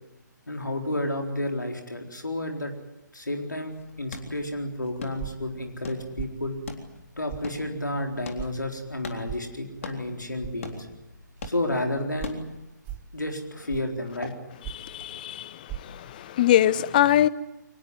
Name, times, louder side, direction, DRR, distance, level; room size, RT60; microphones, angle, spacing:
voice 1, 0.5-2.7 3.1-6.6 7.2-10.9 11.4-12.4 13.1-14.4, left 1 dB, 75° left, 3 dB, 4.2 m, -31 dB
sound 1, 3.7-12.7, left 4 dB, 45° left, 3.7 m, -43 dB
sound 2, 5.2-5.5 6.2-6.4 7.3-7.5 8.4-8.5 9.3-9.5 10.4-10.6 11.4-11.5 12.2-12.4 12.8-13.1 13.7-14.0 14.6-14.9 15.7-15.8, right 11 dB, 15° right, 0.9 m, -37 dB
voice 2, 14.8-15.5 15.8-17.3, left 12 dB, 25° left, 17 dB, 0.8 m, -22 dB
24.0 x 20.0 x 9.5 m, 0.95 s
figure-of-eight pair, 140°, 10 cm